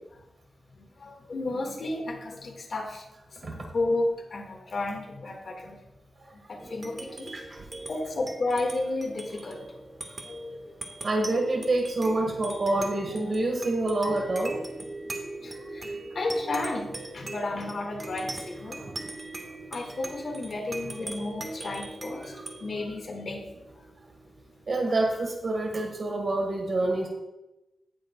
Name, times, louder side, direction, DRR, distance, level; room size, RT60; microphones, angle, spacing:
voice 1, 0.7-3.1 3.3-5.8 6.5-7.3 7.9-9.7 10.2-10.6 15.4-19.0 19.7-22.3 22.6-23.4, left 2 dB, 65° left, 0 dB, 1.8 m, -32 dB
sound 1, 6.6-25.5, right 2 dB, 35° right, 1.5 m, -41 dB
voice 2, 11.0-14.6 18.7-19.2 22.2-22.4 24.7-27.1, right 2 dB, 55° right, 2 dB, 1.5 m, -27 dB
18.0 x 6.4 x 2.3 m, 0.96 s
wide cardioid pair, 90°, 0 cm